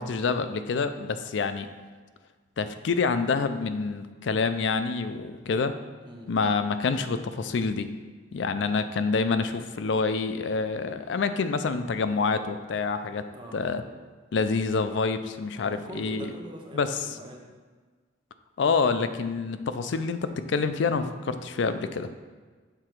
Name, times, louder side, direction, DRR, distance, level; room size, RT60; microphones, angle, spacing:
voice 1, 0.0-1.7 2.6-5.7 6.3-7.9 8.3-13.2 13.5-13.8 14.3-16.3 16.7-16.9 18.6-22.1, left 4 dB, 70° left, 10 dB, 0.4 m, -27 dB
voice 2, 15.5-17.5, right 1 dB, 25° right, 0 dB, 0.8 m, -42 dB
6.8 x 3.8 x 4.5 m, 1.4 s
head